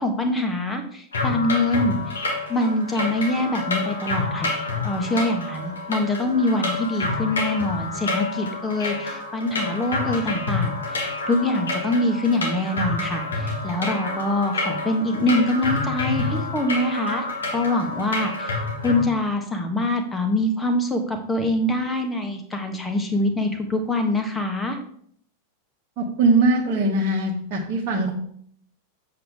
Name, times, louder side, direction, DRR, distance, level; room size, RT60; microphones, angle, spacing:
voice 1, 0.0-2.0 2.5-4.6 4.8-11.0 11.3-17.2 17.5-18.6 18.8-24.8, left 1 dB, 15° left, 6 dB, 1.4 m, -24 dB
sound 1, 1.1-19.0, left 3 dB, 70° left, 2.0 m, -28 dB
voice 2, 26.0-28.1, right 2 dB, 35° right, -4 dB, 1.4 m, -21 dB
7.7 x 6.8 x 3.6 m, 0.63 s
figure-of-eight pair, 90°, 0 cm